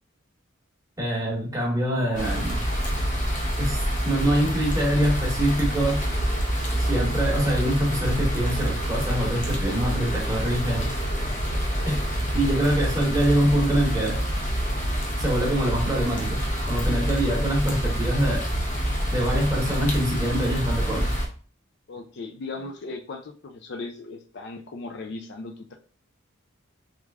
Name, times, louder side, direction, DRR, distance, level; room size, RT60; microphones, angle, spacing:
voice 1, 1.0-2.6 3.6-6.0 6.8-10.9 11.8-12.0 12.3-14.2 15.2-16.4 16.7-18.4 19.1-21.1, right 1 dB, 15° right, -2 dB, 1.1 m, -24 dB
sound 1, 2.2-21.3, equal, 40° left, 0.8 m, -26 dB
voice 2, 21.9-25.8, left 3 dB, 55° left, 5 dB, 0.4 m, -37 dB
3.2 x 2.4 x 3.5 m, 0.41 s
head